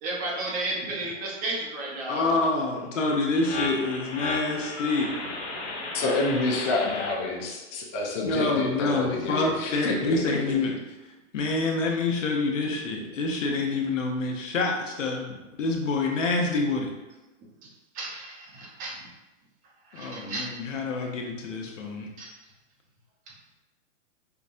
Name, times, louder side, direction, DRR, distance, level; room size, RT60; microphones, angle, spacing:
voice 1, 0.0-2.6 5.2-5.3 5.6-5.9 10.1-10.2 17.4-19.1 19.8-20.5 22.2-22.4 23.3-23.4, right 2 dB, 20° right, -3 dB, 0.7 m, -34 dB
voice 2, 2.1-5.1 8.2-10.7 11.3-16.9 19.9-22.1, left 3 dB, 85° left, 0 dB, 0.9 m, -27 dB
sound 1, 3.3-7.1, left 3 dB, 65° left, 1.3 m, -34 dB
voice 3, 5.9-10.4, left 3 dB, 25° left, -2 dB, 0.4 m, -28 dB
5.6 x 2.1 x 2.6 m, 1.1 s
hypercardioid pair, 135°, 37 cm